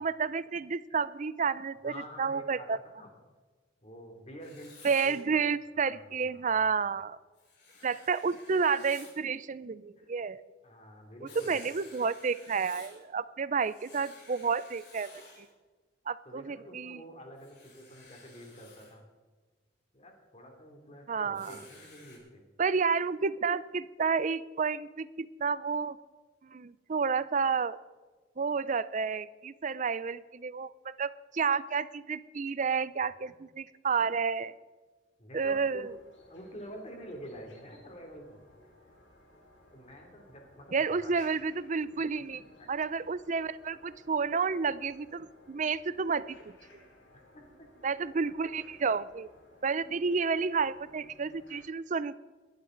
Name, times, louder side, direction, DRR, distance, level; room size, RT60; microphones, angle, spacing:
voice 1, 0.0-2.8 4.8-7.2 7.8-10.4 11.4-15.5 16.1-17.0 21.1-21.6 22.6-26.0 26.4-27.8 28.4-34.5 35.3-35.9 40.7-42.4 42.7-46.5 47.8-49.3 49.6-52.1, right 5 dB, 40° right, 17 dB, 0.5 m, -30 dB
voice 2, 1.8-3.1 3.8-5.2 5.8-6.7 10.0-10.1 10.6-11.8 16.2-19.0 19.9-22.4 33.2-33.3 35.2-35.8 36.3-38.4 39.7-41.1 41.9-42.0 42.3-42.7 47.1-47.4 48.4-48.5 49.8-49.9, equal, 35° left, 2 dB, 2.9 m, -48 dB
Writing, 4.4-5.2 7.4-9.2 11.3-13.0 13.6-15.5 17.4-18.9 21.3-22.2, left 3 dB, 65° left, 5.4 m, -53 dB
sound 1, 35.5-51.6, left 1 dB, 80° left, 3.9 m, -59 dB
22.0 x 11.5 x 3.9 m, 1.3 s
head